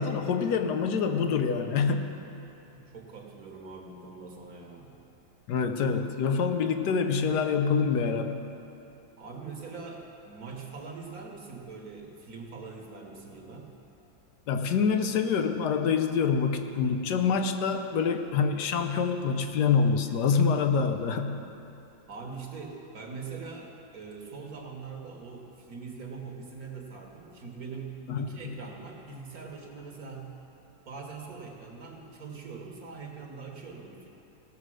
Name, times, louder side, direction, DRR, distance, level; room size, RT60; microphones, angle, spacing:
voice 1, 0.0-2.1 5.5-8.4 14.5-21.4 28.1-28.6, left 5 dB, 70° left, 6 dB, 1.1 m, -26 dB
voice 2, 2.6-4.9 9.2-13.7 22.1-30.4 30.8-34.1, right 4 dB, 55° right, 1 dB, 1.5 m, -42 dB
16.5 x 6.5 x 6.3 m, 2.9 s
omnidirectional pair, 2.1 m